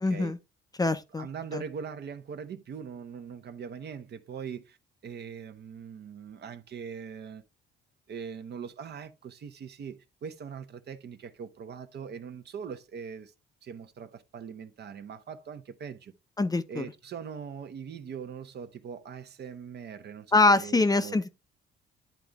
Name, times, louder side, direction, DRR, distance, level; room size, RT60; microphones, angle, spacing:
voice 1, 0.0-0.4 0.8-1.3 1.5-1.6 16.4-16.9 20.3-21.3, left 3 dB, 20° left, 0.6 m, -24 dB
voice 2, 1.2-4.8 5.0-7.4 8.1-13.3 13.6-16.1 16.7-21.3, right 7 dB, 55° right, 0.9 m, -41 dB
10.5 x 3.9 x 3.5 m
cardioid pair, 90°, 20 cm